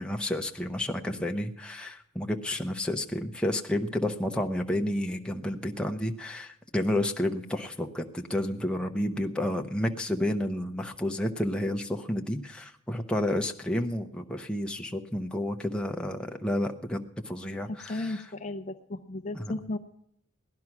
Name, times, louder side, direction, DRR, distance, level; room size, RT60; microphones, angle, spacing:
voice 1, 0.0-18.2 19.3-19.5, left 1 dB, 5° left, 2 dB, 0.8 m, -31 dB
voice 2, 17.7-19.8, left 2 dB, 35° left, 8 dB, 0.6 m, -35 dB
17.0 x 11.0 x 6.0 m, 0.73 s
head